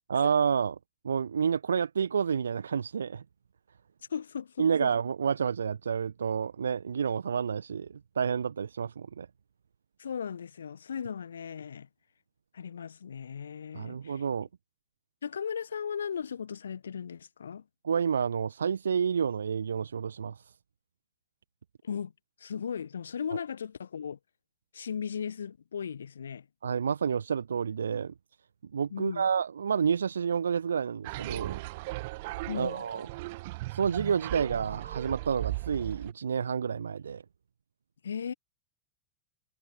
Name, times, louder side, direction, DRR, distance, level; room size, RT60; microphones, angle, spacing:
voice 1, 0.1-0.7 1.0-3.2 4.6-9.3 13.7-14.5 17.8-20.5 26.6-28.1 28.7-31.6 32.5-33.1 33.7-37.2, right 7 dB, 70° right, 1.4 m, -29 dB
voice 2, 4.1-4.9 10.0-11.9 12.5-14.2 15.2-17.6 21.8-22.1 22.4-24.2 24.7-26.4 28.9-29.3 32.5-32.8 38.0-38.3, left 7 dB, 70° left, 1.4 m, -37 dB
sound 1, 31.0-36.1, right 21 dB, 50° right, 1.4 m, -37 dB
figure-of-eight pair, 90°, 0 cm